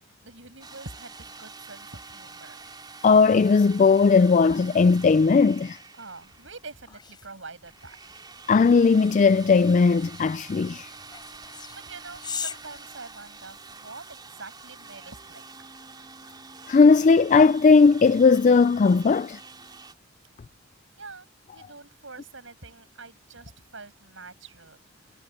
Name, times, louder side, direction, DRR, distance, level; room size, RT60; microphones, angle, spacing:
voice 1, 0.2-2.6 6.0-8.0 11.5-15.4 21.0-24.8, right 3 dB, 70° right, 7.8 m, -45 dB
sound 1, 0.6-6.8 7.7-19.9, right 4 dB, 20° right, 3.4 m, -46 dB
voice 2, 3.0-5.8 8.5-10.9 16.7-19.4, left 4 dB, 40° left, 0.3 m, -18 dB
sound 2, 6.3-13.7, left 6 dB, 20° left, 6.6 m, -42 dB
head